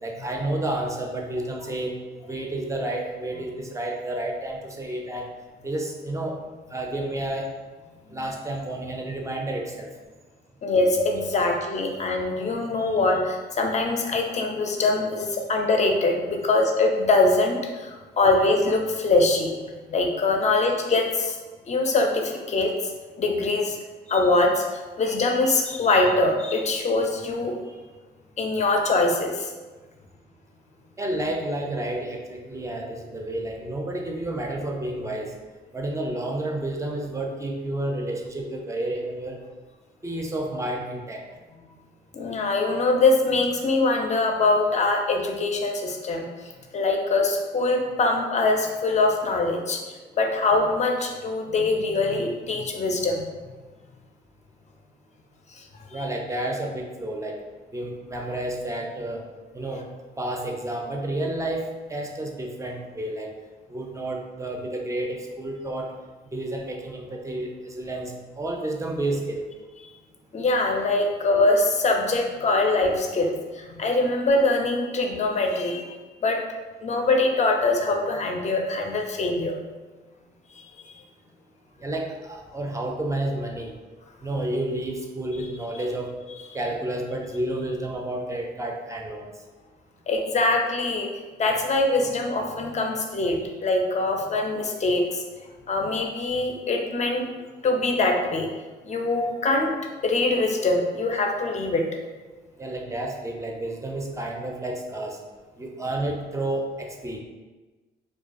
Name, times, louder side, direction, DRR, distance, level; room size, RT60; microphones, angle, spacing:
voice 1, 0.0-2.0 2.2-5.3 5.6-6.4 6.7-7.5 8.1-9.9 12.8-13.0 31.0-35.3 35.7-39.4 40.0-41.3 55.9-57.4 57.7-59.3 59.5-59.8 60.2-63.3 63.7-65.9 66.3-69.5 81.8-83.7 84.2-86.1 86.5-89.3 102.6-105.2 105.6-107.2, right 1 dB, 15° right, 1 dB, 0.5 m, -30 dB
voice 2, 10.6-19.6 19.9-21.4 21.7-22.9 23.2-23.8 24.1-27.6 28.4-29.5 42.1-53.3 55.5-56.0 70.3-76.0 76.2-76.4 76.8-79.6 80.6-80.9 90.1-91.1 91.4-95.2 95.7-97.3 97.6-98.5 98.8-99.7 100.0-101.8, left 2 dB, 35° left, 2 dB, 0.5 m, -23 dB
2.3 x 2.2 x 2.5 m, 1.3 s
supercardioid pair, 60°, 20 cm